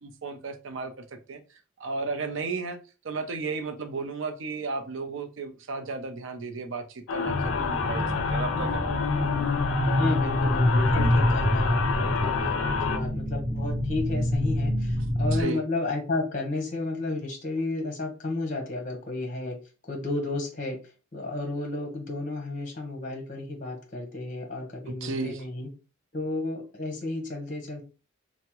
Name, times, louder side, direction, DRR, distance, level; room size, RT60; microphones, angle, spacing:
voice 1, 0.0-0.9 1.3-1.4 1.8-2.8 3.0-9.2 15.3-15.6 25.0-25.4, right 4 dB, 65° right, 0.5 m, -34 dB
sound 1, 7.1-13.0, left 5 dB, 75° left, 0.4 m, -29 dB
voice 2, 7.3-7.6 9.9-19.6 19.8-20.8 21.1-25.7 26.1-27.8, left 2 dB, 40° left, 0.8 m, -32 dB
sound 2, 7.3-15.4, left 1 dB, ahead, 0.6 m, -26 dB
3.4 x 2.1 x 2.9 m
head